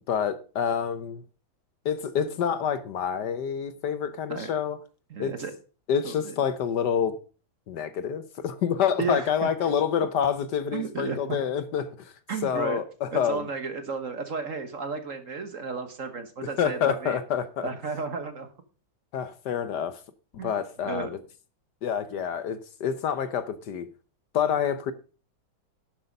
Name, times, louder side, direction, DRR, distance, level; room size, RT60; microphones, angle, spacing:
voice 1, 0.1-1.2 1.8-4.8 5.2-5.3 5.9-7.2 7.7-12.1 12.4-13.4 16.6-17.7 19.1-20.0 20.4-21.1 21.8-23.8 24.3-24.9, left 8 dB, 65° left, 1.3 m, -27 dB
voice 2, 5.1-5.5 6.0-6.3 9.0-9.7 10.7-11.4 12.3-12.8 13.1-17.2 17.6-18.5 20.4-20.5 20.8-21.1, right 4 dB, 45° right, 1.4 m, -33 dB
11.5 x 7.9 x 5.2 m
omnidirectional pair, 2.1 m